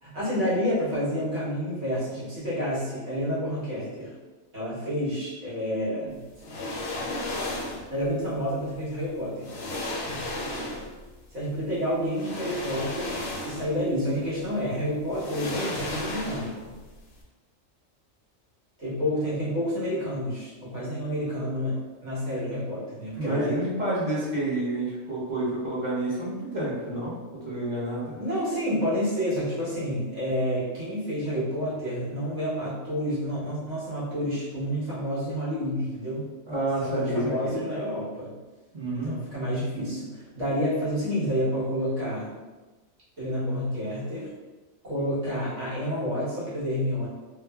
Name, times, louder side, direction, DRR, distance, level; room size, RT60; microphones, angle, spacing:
voice 1, 0.0-4.1 4.5-6.2 7.9-9.6 11.3-16.7 18.8-23.6 28.2-36.3 36.8-38.3 38.9-42.3 43.2-44.3 44.8-47.1, equal, 65° right, -10 dB, 1.5 m, -29 dB
sound 1, 6.4-7.9 9.0-9.1 9.4-11.0 12.1-13.8 14.2-14.3 15.1-16.7 17.0-17.1, left 2 dB, 60° left, 0.6 m, -34 dB
voice 2, 23.2-27.1 27.4-28.2 36.5-37.6 38.7-39.1, right 1 dB, 40° right, -9 dB, 0.8 m, -29 dB
2.9 x 2.1 x 2.3 m, 1.2 s
omnidirectional pair, 1.4 m